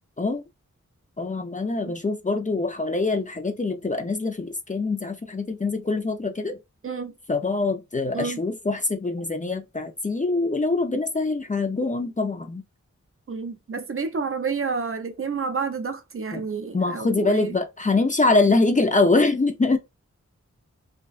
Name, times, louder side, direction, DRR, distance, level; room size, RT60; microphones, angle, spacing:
voice 1, 1.2-6.6 7.3-12.6 16.3-16.4 16.7-19.8, left 3 dB, 25° left, 0.4 m, -24 dB
voice 2, 13.3-17.6, right 5 dB, 50° right, 0.4 m, -29 dB
2.5 x 2.1 x 2.4 m
wide cardioid pair, 65°, 29 cm